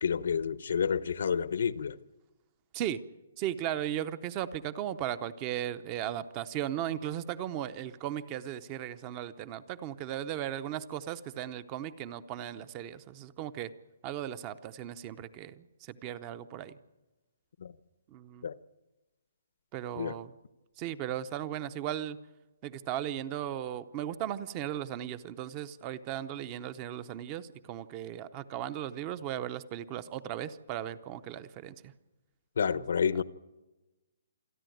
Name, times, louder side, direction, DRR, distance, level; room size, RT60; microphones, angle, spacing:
voice 1, 0.0-2.0 17.6-17.7 18.4-18.6 20.0-20.2 32.6-33.2, left 7 dB, 60° left, 0.8 m, -29 dB
voice 2, 3.4-13.7 14.0-16.7 18.1-18.5 19.7-20.3 20.8-22.2 22.6-31.9 32.7-32.8, right 11 dB, 20° right, 0.6 m, -37 dB
27.5 x 11.0 x 9.3 m
hypercardioid pair, 175°, 0 cm